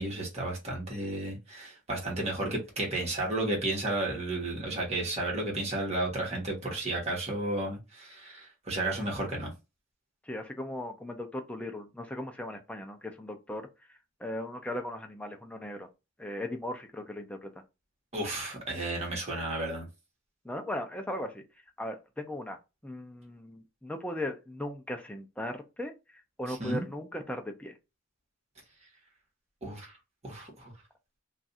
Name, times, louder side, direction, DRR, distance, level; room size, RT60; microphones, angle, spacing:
voice 1, 0.0-9.5 18.1-19.9 26.5-26.9 29.6-29.9 30.2-30.7, right 2 dB, 35° right, 1.2 m, -33 dB
voice 2, 10.2-13.7 14.2-15.9 16.2-17.5 20.4-21.4 21.8-22.6 22.8-25.9 26.4-27.7, left 1 dB, 5° left, 0.4 m, -37 dB
2.5 x 2.4 x 4.0 m
head